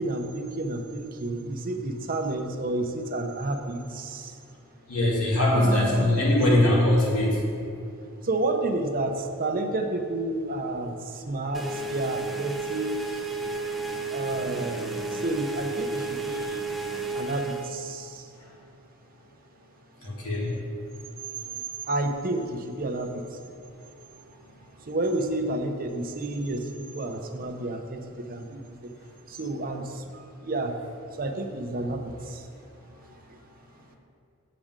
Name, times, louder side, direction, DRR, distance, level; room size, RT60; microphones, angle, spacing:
voice 1, 0.0-4.3 5.4-6.0 8.2-13.3 14.1-16.7 17.1-18.3 21.4-21.6 21.9-23.2 24.8-28.9 29.3-30.7 31.2-32.5, right 2 dB, 40° right, 5 dB, 0.7 m, -30 dB
voice 2, 4.9-7.4 20.0-20.5, left 1 dB, 85° left, -4 dB, 2.2 m, -21 dB
sound 1, 11.5-17.7, right 3 dB, ahead, 0.5 m, -32 dB
7.6 x 5.1 x 7.4 m, 2.5 s
head